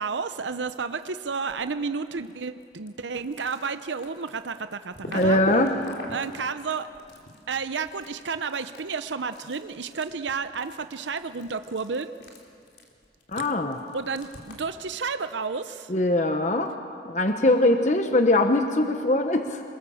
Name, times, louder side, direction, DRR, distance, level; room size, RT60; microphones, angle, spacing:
voice 1, 0.0-5.4 6.1-6.9 7.5-12.1 13.9-15.9, right 5 dB, 85° right, 10 dB, 0.7 m, -31 dB
sound 1, 0.6-1.7 2.0-14.7, left 1 dB, 70° left, 3.7 m, -42 dB
voice 2, 5.1-5.8 13.3-13.8 15.9-16.7 17.1-19.6, left 1 dB, 40° left, 5 dB, 1.0 m, -22 dB
27.0 x 22.0 x 7.1 m, 2.3 s
head